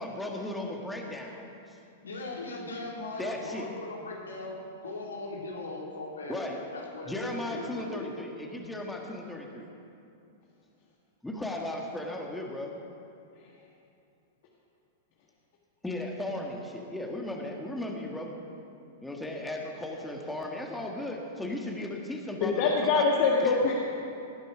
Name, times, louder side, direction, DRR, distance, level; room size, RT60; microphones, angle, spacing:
voice 1, 0.0-1.8 3.2-3.8 6.3-6.6 7.1-9.7 11.2-12.7 15.8-18.4 19.0-23.1 23.4-23.6, left 1 dB, 5° left, 0 dB, 1.7 m, -36 dB
voice 2, 2.0-4.6 4.8-8.1, left 2 dB, 85° left, -2 dB, 3.1 m, -39 dB
voice 3, 22.4-23.8, left 4 dB, 55° left, -2 dB, 1.6 m, -24 dB
18.5 x 10.5 x 5.0 m, 2.7 s
hypercardioid pair, 105°, 0 cm